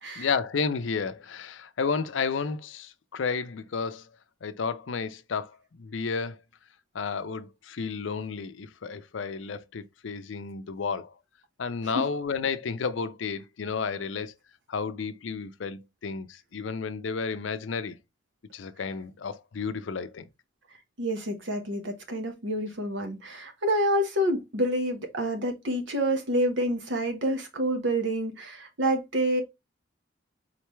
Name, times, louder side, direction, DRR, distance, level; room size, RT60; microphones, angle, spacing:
voice 1, 0.2-4.1 4.4-6.4 6.9-11.1 11.6-14.3 14.7-18.0 18.5-20.3, left 5 dB, 75° left, 0.5 m, -32 dB
voice 2, 21.0-29.4, right 1 dB, 70° right, 1.1 m, -28 dB
3.9 x 3.3 x 3.0 m
head